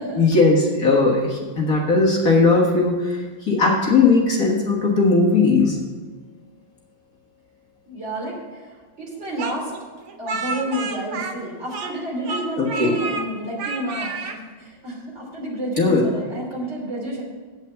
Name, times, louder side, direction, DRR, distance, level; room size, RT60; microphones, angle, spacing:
voice 1, 0.2-5.8 12.6-12.9 15.8-16.1, left 3 dB, 45° left, -3 dB, 1.8 m, -18 dB
voice 2, 7.9-8.7 9.0-9.7 10.2-17.2, right 1 dB, 30° right, -3 dB, 3.3 m, -30 dB
Speech, 9.4-12.0 12.2-13.3 13.6-14.4, right 4 dB, 60° right, 0.7 m, -30 dB
8.3 x 8.3 x 6.9 m, 1.4 s
omnidirectional pair, 2.3 m